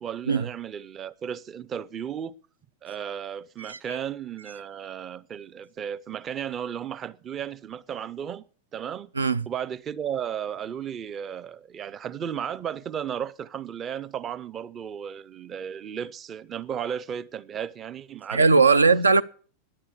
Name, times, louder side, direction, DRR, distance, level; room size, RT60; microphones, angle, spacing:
voice 1, 0.0-2.3 2.8-8.4 8.7-9.1 9.5-18.8, right 8 dB, 25° right, 0.6 m, -34 dB
voice 2, 18.3-19.2, right 4 dB, 75° right, 0.5 m, -19 dB
10.5 x 8.7 x 8.5 m
figure-of-eight pair, 90°, 0 cm